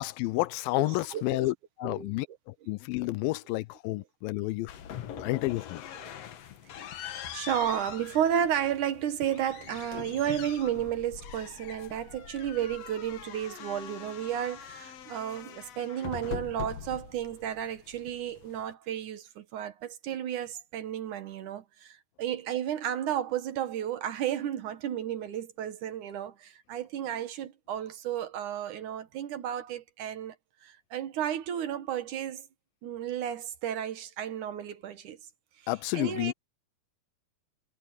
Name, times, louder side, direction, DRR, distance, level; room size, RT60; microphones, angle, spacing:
voice 1, 0.0-4.7 5.2-5.8 35.7-36.3, left 19 dB, 85° left, 2.3 m, -30 dB
voice 2, 0.8-1.5 1.8-2.1 6.0-6.1 7.0-30.3 30.6-32.5 32.8-35.2 35.9-36.3, right 10 dB, 65° right, 2.6 m, -33 dB
sound 1, 4.7-18.7, left 9 dB, 60° left, 1.9 m, -43 dB
omnidirectional pair, 4.1 m